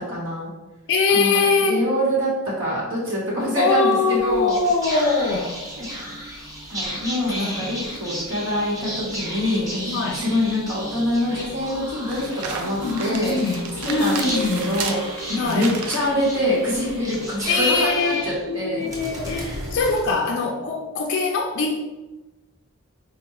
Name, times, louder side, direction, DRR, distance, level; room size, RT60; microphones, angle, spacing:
voice 1, 0.1-0.5 1.1-4.6 5.8-6.2 6.7-9.8 10.1-13.4 13.8-15.0 15.3-18.9 19.2-20.0, left 1 dB, 65° right, -6 dB, 1.0 m, -25 dB
voice 2, 0.9-1.9 3.6-5.6 7.4-7.6 9.9-10.3 12.8-14.7 15.3-15.7 17.5-21.9, left 3 dB, 55° left, 1 dB, 0.4 m, -22 dB
sound 1, 3.4-17.8, right 5 dB, 90° right, 0.5 m, -37 dB
Whispering, 4.2-20.7, equal, 15° right, 0.8 m, -34 dB
4.5 x 2.1 x 3.0 m, 1.1 s
head